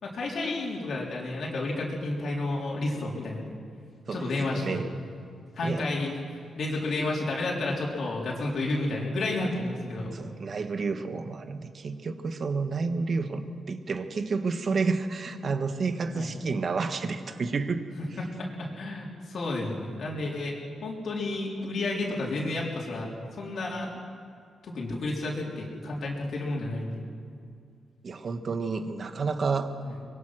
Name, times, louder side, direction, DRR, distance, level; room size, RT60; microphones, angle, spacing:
voice 1, 0.0-3.5 4.1-4.8 5.6-6.1 6.6-10.1 16.1-16.3 18.2-20.6 20.8-23.9 24.6-27.0 29.8-29.9, left 2 dB, 60° left, -3 dB, 4.0 m, -31 dB
voice 2, 4.1-4.9 5.6-5.9 10.1-17.8 28.0-29.7, right 4 dB, 45° right, 9 dB, 1.3 m, -30 dB
24.5 x 21.0 x 6.3 m, 2.3 s
cardioid pair, 125°, 0 cm